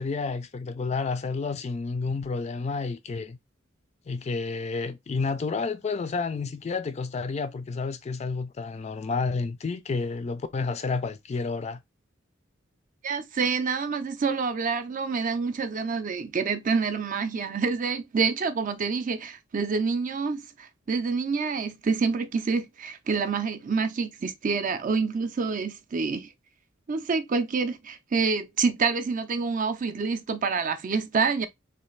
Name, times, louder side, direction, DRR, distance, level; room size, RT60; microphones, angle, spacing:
voice 1, 0.0-3.4 4.1-11.8, left 4 dB, 35° left, 0.3 m, -30 dB
voice 2, 13.0-20.4 20.9-26.3 26.9-31.5, right 5 dB, 40° right, 0.4 m, -27 dB
3.2 x 2.3 x 3.1 m
head